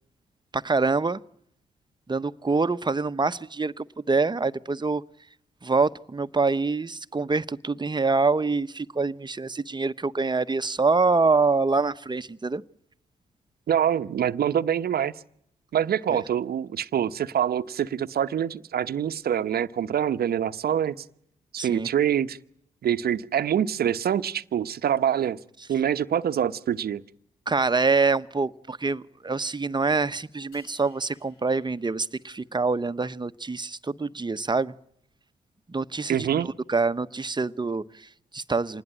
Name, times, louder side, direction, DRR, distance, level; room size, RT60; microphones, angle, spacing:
voice 1, 0.5-1.2 2.1-5.0 5.6-12.6 16.1-16.2 21.6-21.9 27.5-34.7 35.7-38.8, right 4 dB, 25° right, 1.1 m, -25 dB
voice 2, 13.7-15.1 15.7-21.0 21.5-22.4 22.8-25.4 25.7-27.0 36.1-36.5, right 9 dB, 65° right, 1.0 m, -25 dB
sound 1, 30.5-32.8, left 3 dB, 85° left, 5.0 m, -60 dB
27.0 x 20.0 x 8.8 m
hypercardioid pair, 40°, 17 cm